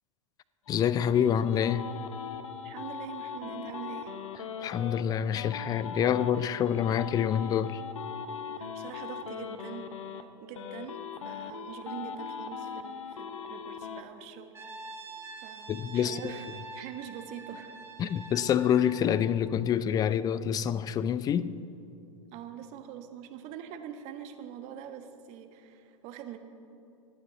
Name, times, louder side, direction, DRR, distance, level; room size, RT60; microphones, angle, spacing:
sound 1, 0.7-5.0 5.4-10.2 10.5-14.0, left 7 dB, 65° left, 1.0 m, -40 dB
voice 1, 0.7-1.9 4.6-7.8 15.7-16.2 18.0-21.6, left 9 dB, 20° left, 0.5 m, -27 dB
voice 2, 2.6-4.1 8.5-14.8 15.4-17.7 22.3-26.4, right 9 dB, 40° right, 1.3 m, -44 dB
Brass instrument, 14.5-19.4, right 4 dB, 15° right, 1.9 m, -46 dB
27.0 x 9.3 x 4.0 m
figure-of-eight pair, 100°, 17 cm